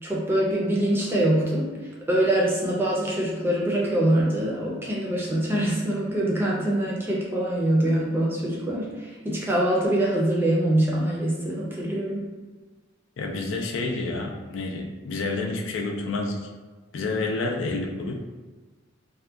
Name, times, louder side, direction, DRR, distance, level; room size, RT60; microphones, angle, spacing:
voice 1, 0.0-12.2, right 1 dB, 10° right, -5 dB, 0.5 m, -24 dB
voice 2, 13.2-16.4 16.9-18.1, left 3 dB, 75° left, 1 dB, 0.4 m, -29 dB
2.7 x 2.2 x 2.3 m, 1.3 s
head